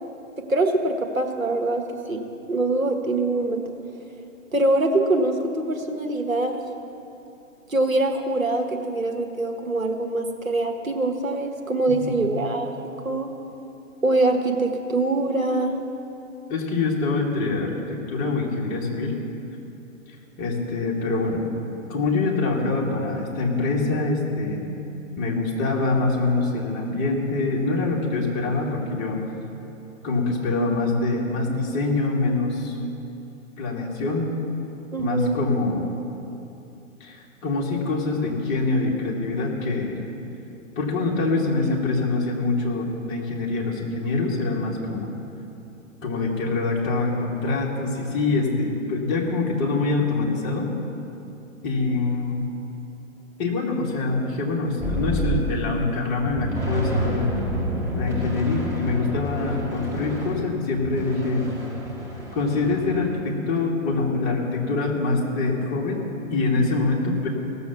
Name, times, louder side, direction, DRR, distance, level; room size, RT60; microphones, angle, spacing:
voice 1, 0.5-2.2 2.5-3.6 4.5-6.6 7.7-12.7 13.0-13.3 14.0-15.8 34.9-35.4, right 2 dB, 85° right, 3 dB, 1.4 m, -23 dB
voice 2, 12.0-12.4 16.5-19.1 20.4-21.4 21.9-24.6 25.2-29.2 30.0-32.8 33.6-34.3 35.0-35.9 37.0-40.0 40.8-45.1 46.0-50.7 51.6-52.5 53.4-57.3 57.9-61.5 62.3-66.0 66.3-67.3, left 3 dB, 25° left, -2 dB, 1.8 m, -24 dB
sound 1, 54.8-55.8 56.2-63.2, right 1 dB, 5° right, 1.5 m, -29 dB
17.0 x 7.0 x 7.0 m, 2.8 s
figure-of-eight pair, 125°, 40 cm